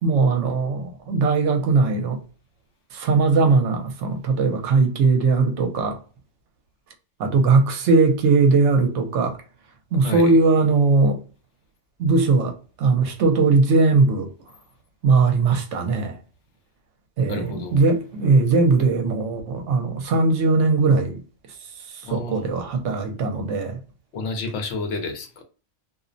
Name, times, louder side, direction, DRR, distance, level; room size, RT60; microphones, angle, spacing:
voice 1, 0.0-2.2 2.9-6.0 7.2-9.4 9.9-11.2 12.0-14.3 15.0-16.2 17.2-21.2 21.9-23.8, right 4 dB, 75° right, 0.9 m, -19 dB
voice 2, 10.0-10.4 17.3-17.8 22.0-22.5 24.1-25.4, left 3 dB, 70° left, 0.9 m, -30 dB
2.4 x 2.0 x 2.5 m
omnidirectional pair, 1.3 m